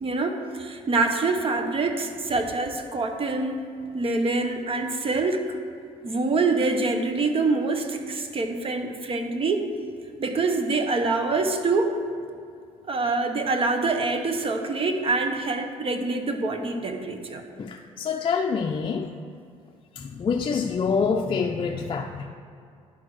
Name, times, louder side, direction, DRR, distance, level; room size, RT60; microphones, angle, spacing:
voice 1, 0.0-3.7 3.9-5.4 6.0-9.6 10.2-12.0 12.9-17.4, right 3 dB, 40° right, 5 dB, 1.0 m, -25 dB
voice 2, 17.6-19.1 20.0-22.3, left 5 dB, 40° left, 2 dB, 0.5 m, -26 dB
10.5 x 4.6 x 6.1 m, 2.4 s
cardioid pair, 90°, 14 cm